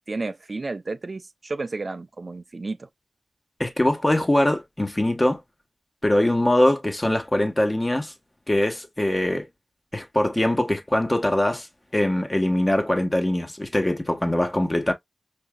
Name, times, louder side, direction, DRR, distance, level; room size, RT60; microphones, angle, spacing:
voice 1, 0.1-2.9, right 3 dB, 60° right, 0.5 m, -32 dB
voice 2, 3.6-5.4 6.0-8.1 8.5-9.5 9.9-11.7 11.9-14.9, left 1 dB, 25° left, 1.2 m, -22 dB
4.9 x 2.7 x 2.2 m
cardioid pair, 40°, 0 cm